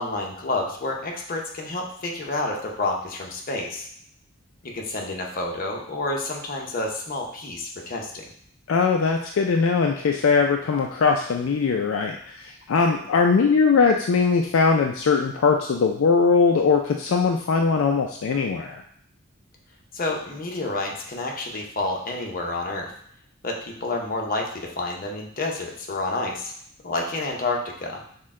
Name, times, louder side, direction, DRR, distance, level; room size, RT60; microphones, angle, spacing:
voice 1, 0.0-3.9 4.6-8.3 19.9-22.9 23.4-26.5 26.8-28.1, left 2 dB, 45° left, 0 dB, 0.8 m, -29 dB
voice 2, 8.7-18.8, left 5 dB, 70° left, 2 dB, 0.4 m, -21 dB
6.4 x 2.2 x 3.6 m, 0.64 s
head